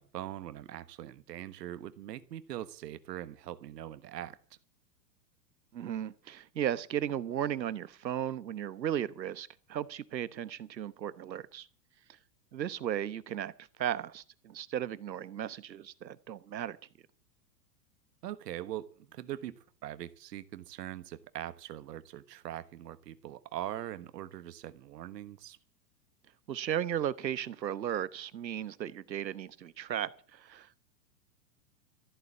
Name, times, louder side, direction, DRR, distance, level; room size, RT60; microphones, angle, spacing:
voice 1, 0.0-4.4 18.2-25.6, right 12 dB, 70° right, 1.3 m, -42 dB
voice 2, 5.7-11.7 12.5-16.8 26.5-30.8, right 10 dB, 90° right, 1.1 m, -35 dB
14.0 x 8.0 x 8.6 m
hypercardioid pair, 110°, 50 cm